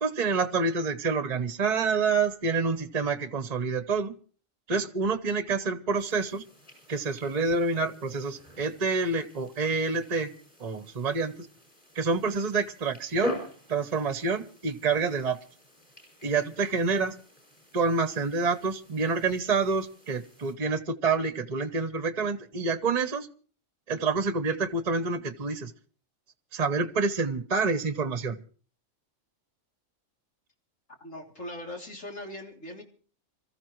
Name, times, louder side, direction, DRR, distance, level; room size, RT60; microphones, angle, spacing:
voice 1, 0.0-4.1 4.7-6.4 6.9-10.3 10.6-11.3 12.0-13.4 13.7-15.4 16.2-17.2 17.7-23.3 23.9-25.7 26.5-28.4, right 4 dB, 35° right, 11 dB, 0.9 m, -27 dB
sound 1, 6.0-20.5, left 1 dB, 25° left, 5.7 m, -44 dB
voice 2, 31.0-32.8, left 1 dB, 75° left, 0 dB, 3.5 m, -40 dB
26.5 x 14.5 x 3.1 m, 0.41 s
omnidirectional pair, 1.3 m